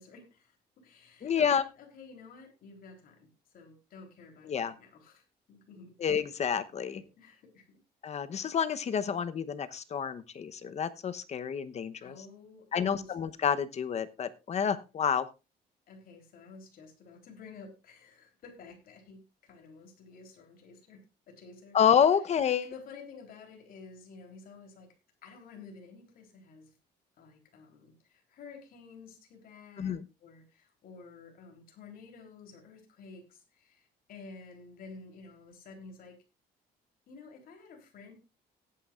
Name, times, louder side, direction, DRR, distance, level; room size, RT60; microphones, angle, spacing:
voice 1, 0.0-3.3 3.5-6.0 6.8-7.8 12.0-13.1 15.9-21.8 22.6-24.9 25.2-26.7 27.2-29.9 30.2-36.2 37.1-38.1, left 4 dB, 60° left, 2 dB, 3.6 m, -51 dB
voice 2, 1.2-1.6 4.5-4.7 6.0-7.0 8.0-12.1 12.7-15.3 21.7-22.7 29.8-30.0, left 7 dB, 40° left, 12 dB, 0.9 m, -28 dB
18.0 x 8.9 x 2.5 m, 0.28 s
cardioid pair, 110°, 17 cm